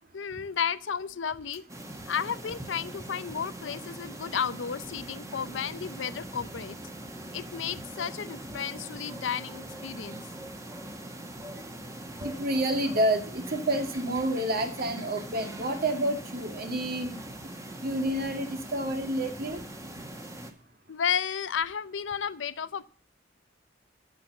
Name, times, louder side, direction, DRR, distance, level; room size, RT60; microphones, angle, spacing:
voice 1, 0.1-1.6 2.1-6.8 7.3-10.2 20.9-22.8, left 7 dB, 80° left, 15 dB, 0.6 m, -33 dB
sound 1, 1.7-20.5, right 1 dB, 15° right, 1.6 m, -42 dB
voice 2, 12.2-17.2 17.8-19.6, right 1 dB, 55° right, 5 dB, 2.1 m, -29 dB
12.0 x 6.2 x 7.2 m, 0.42 s
head